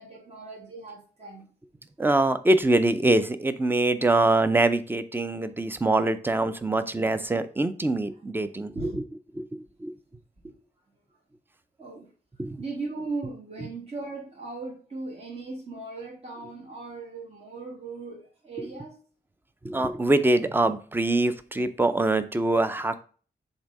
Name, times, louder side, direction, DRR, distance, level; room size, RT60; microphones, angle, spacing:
voice 1, 0.0-1.5 8.7-9.0 10.4-10.5 11.8-12.1 12.6-19.0, right 3 dB, 35° right, -1 dB, 1.2 m, -37 dB
voice 2, 2.0-8.7 9.5-9.9 12.4-12.6 19.6-23.0, right 2 dB, 10° right, 12 dB, 0.4 m, -24 dB
7.0 x 2.7 x 5.2 m, 0.40 s
wide cardioid pair, 145°, 17 cm